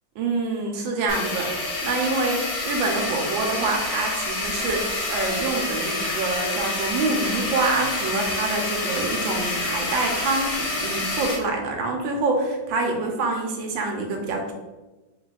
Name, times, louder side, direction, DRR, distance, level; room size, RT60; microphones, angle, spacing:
voice 1, 0.2-1.5 1.8-14.5, right 3 dB, 85° right, 2 dB, 1.5 m, -26 dB
sound 1, 1.1-11.3, left 2 dB, 65° left, 1.5 m, -28 dB
3.9 x 2.3 x 4.1 m, 1.1 s
omnidirectional pair, 2.0 m